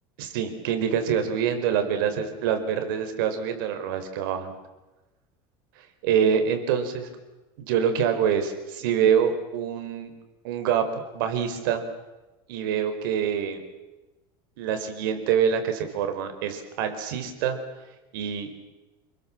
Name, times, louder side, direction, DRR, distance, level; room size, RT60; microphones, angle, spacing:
voice 1, 0.2-4.6 6.0-7.1 7.6-10.1 10.4-11.8 12.5-13.6 14.6-17.6 18.1-18.5, right 8 dB, 75° right, 7 dB, 4.8 m, -25 dB
29.5 x 21.5 x 7.5 m, 1.1 s
cardioid pair, 170°, 11 cm